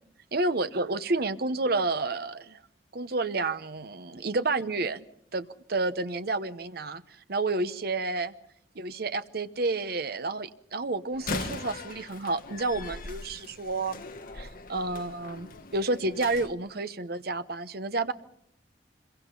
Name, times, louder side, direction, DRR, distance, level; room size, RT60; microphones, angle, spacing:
voice 1, 0.3-2.6 2.9-5.0 5.3-7.0 7.3-8.3 8.7-14.0 14.3-18.1, right 3 dB, 55° right, 12 dB, 0.9 m, -30 dB
Slam, 11.1-16.5, left 3 dB, 50° left, 1.4 m, -39 dB
25.5 x 22.5 x 5.4 m, 0.70 s
head